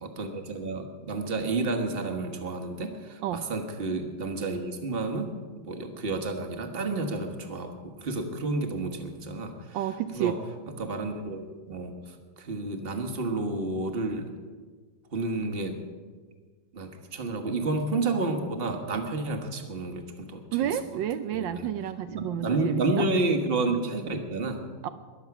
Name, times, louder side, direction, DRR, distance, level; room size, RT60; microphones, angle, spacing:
voice 1, 0.0-5.4 5.7-9.8 10.1-10.4 10.8-14.3 15.1-15.8 16.7-20.8 21.3-21.7 22.1-24.6, right 3 dB, 35° right, 5 dB, 1.4 m, -30 dB
voice 2, 9.7-10.3 20.5-23.1 24.8-24.9, right 10 dB, 80° right, 10 dB, 1.3 m, -30 dB
22.0 x 7.4 x 5.9 m, 1.5 s
omnidirectional pair, 2.0 m